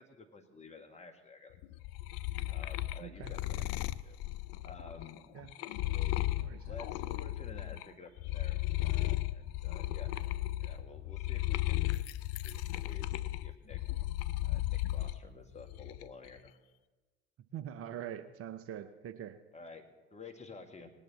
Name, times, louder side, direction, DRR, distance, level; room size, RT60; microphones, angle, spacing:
voice 1, 0.0-1.6 2.5-3.4 3.8-4.2 4.6-5.2 5.8-6.2 6.6-10.1 10.6-13.1 13.4-13.8 14.4-16.5 19.5-20.9, left 4 dB, 20° left, 4 dB, 1.8 m, -52 dB
sound 1, 1.6-7.9 8.2-15.2 15.6-16.3, left 17 dB, 50° left, 0.5 m, -35 dB
voice 2, 3.0-3.7 5.3-5.5 6.3-6.8 17.5-19.4, right 10 dB, 45° right, 11 dB, 0.8 m, -44 dB
19.0 x 10.0 x 4.2 m, 1.2 s
figure-of-eight pair, 70°, 34 cm